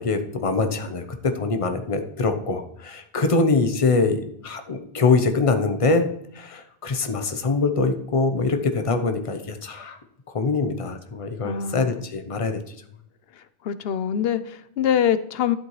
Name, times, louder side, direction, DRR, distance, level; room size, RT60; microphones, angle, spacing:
voice 1, 0.0-6.1 6.3-10.0 10.3-12.6, left 3 dB, 35° left, 6 dB, 0.8 m, -23 dB
voice 2, 11.4-11.9 13.3-15.6, left 9 dB, 75° left, 13 dB, 0.8 m, -24 dB
11.5 x 7.6 x 3.1 m, 0.75 s
omnidirectional pair, 1.0 m